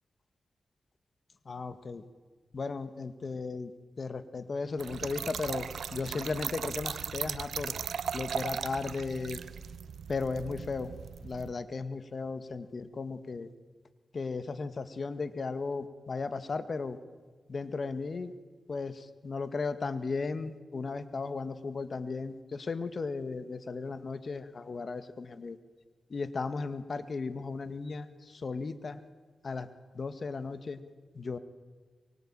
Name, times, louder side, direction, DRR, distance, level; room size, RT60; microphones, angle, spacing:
voice 1, 1.5-2.0 2.5-3.7 4.0-5.7 5.9-7.7 8.1-9.4 10.1-10.9 11.2-13.5 14.1-17.0 17.5-18.3 18.7-25.6 26.1-29.0 29.4-29.7 29.9-30.8 31.1-31.4, left 4 dB, 55° left, 10 dB, 2.0 m, -35 dB
Trickle dribble / Fill (with liquid), 4.8-11.5, right 7 dB, 85° right, 0.9 m, -38 dB
23.5 x 23.5 x 9.0 m, 1.4 s
cardioid pair, 65°, 0 cm